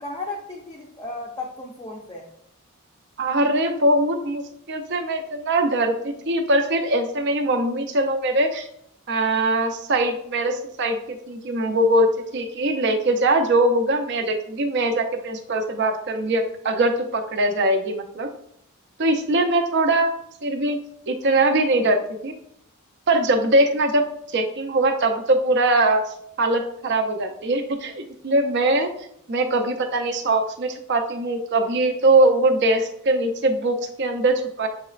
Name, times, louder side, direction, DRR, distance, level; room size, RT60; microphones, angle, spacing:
voice 1, 0.0-2.3, left 2 dB, 15° left, -3 dB, 0.5 m, -34 dB
voice 2, 3.2-4.4 4.7-8.7 9.1-18.3 19.0-20.1 20.4-20.8 21.1-22.3 23.1-24.0 24.3-26.0 26.4-28.9 29.3-34.7, right 2 dB, 50° right, 6 dB, 0.6 m, -21 dB
7.1 x 3.0 x 2.4 m, 0.72 s
head